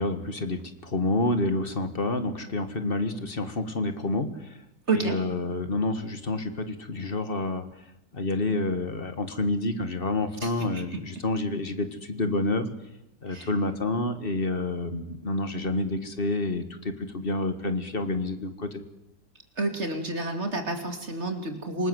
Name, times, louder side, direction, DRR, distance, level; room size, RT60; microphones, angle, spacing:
voice 1, 0.0-4.6 4.9-7.7 8.1-12.7 13.2-18.8, left 2 dB, 35° left, 10 dB, 1.9 m, -28 dB
voice 2, 4.9-5.2 10.4-10.9 13.3-13.5 19.6-21.9, right 2 dB, 45° right, 6 dB, 3.0 m, -29 dB
27.0 x 19.0 x 8.0 m, 0.87 s
omnidirectional pair, 1.6 m